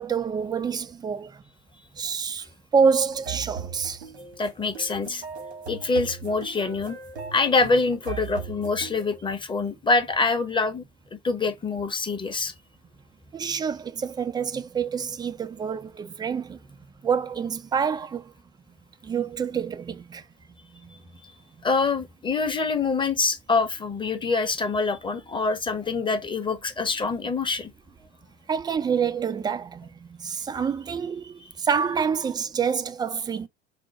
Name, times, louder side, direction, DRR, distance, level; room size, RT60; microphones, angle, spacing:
voice 1, 0.0-1.4 1.9-2.5 2.7-4.0 13.3-16.8 17.0-18.3 19.0-20.2 20.8-20.9 28.5-33.5, right 6 dB, 15° right, 0.3 m, -27 dB
sound 1, 3.1-9.2, right 6 dB, 75° right, 1.5 m, -38 dB
voice 2, 4.4-5.2 5.7-7.0 7.3-10.8 11.1-12.5 21.6-27.7, left 4 dB, 15° left, 0.7 m, -25 dB
4.2 x 2.2 x 4.5 m
figure-of-eight pair, 75°, 32 cm